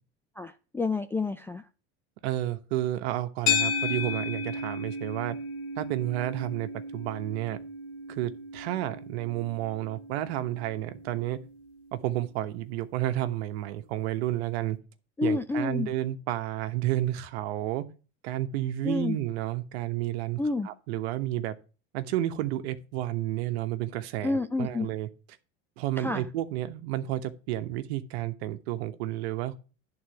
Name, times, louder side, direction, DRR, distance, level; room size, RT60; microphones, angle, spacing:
voice 1, 0.4-1.6 15.2-15.9 18.8-19.2 20.4-20.7 24.2-24.9 26.0-26.3, left 3 dB, 5° left, 0.4 m, -29 dB
voice 2, 2.2-5.4 5.8-7.6 8.1-11.4 11.9-14.8 15.2-17.8 18.2-21.6 21.9-25.1 25.8-29.6, right 13 dB, 80° right, 1.2 m, -31 dB
sound 1, 3.5-11.9, left 4 dB, 80° left, 1.8 m, -34 dB
11.0 x 4.0 x 7.8 m
supercardioid pair, 125°, 31 cm